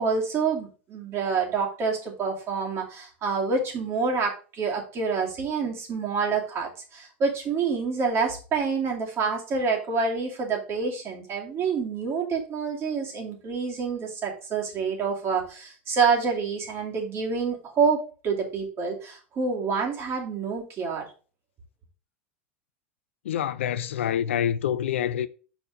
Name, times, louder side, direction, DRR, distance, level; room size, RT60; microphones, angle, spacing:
voice 1, 0.0-21.0, right 5 dB, 40° right, 2.5 m, -27 dB
voice 2, 23.2-25.3, left 9 dB, 75° left, 0.5 m, -26 dB
5.5 x 4.3 x 5.1 m
hypercardioid pair, 90°, 7 cm